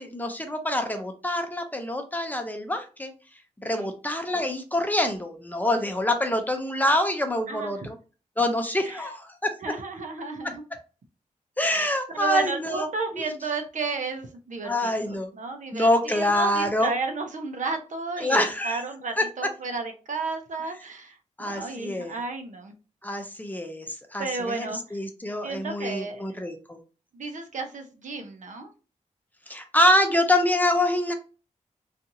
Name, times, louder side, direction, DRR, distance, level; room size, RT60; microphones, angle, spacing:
voice 1, 0.0-3.1 3.6-7.9 8.4-9.5 11.6-12.9 13.1-13.3 14.6-15.3 15.7-16.9 18.2-18.8 19.2-19.3 21.4-22.2 23.0-26.8 29.5-31.1, left 1 dB, 15° left, 5 dB, 0.6 m, -25 dB
voice 2, 7.5-7.9 8.8-9.1 9.6-10.6 11.7-22.7 24.2-25.0 25.4-26.3 27.1-28.7, right 4 dB, 70° right, 5 dB, 0.6 m, -33 dB
2.7 x 2.4 x 2.6 m, 0.34 s
cardioid pair, 70°, 13 cm